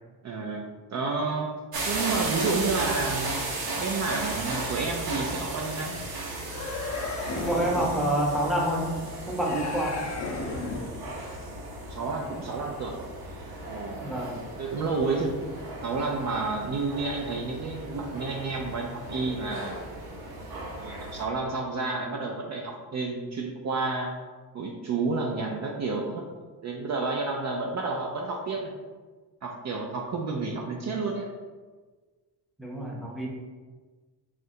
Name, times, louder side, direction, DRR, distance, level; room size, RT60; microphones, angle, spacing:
voice 1, 0.2-1.5 1.9-3.3 3.8-5.9 11.9-13.0 13.6-14.1 14.6-15.4 15.8-19.8 20.8-24.1 24.5-26.2 26.6-28.7 29.4-31.3, right 3 dB, 45° right, 0 dB, 0.5 m, -30 dB
sound 1, 1.7-21.2, right 2 dB, 65° right, 0.8 m, -35 dB
sound 2, 6.4-8.0 9.4-11.0, left 3 dB, 40° left, 0.6 m, -34 dB
voice 2, 7.3-8.9 9.3-10.0 14.0-14.4 32.6-33.3, right 1 dB, ahead, -4 dB, 0.7 m, -27 dB
3.8 x 2.5 x 4.2 m, 1.4 s
cardioid pair, 140°, 40 cm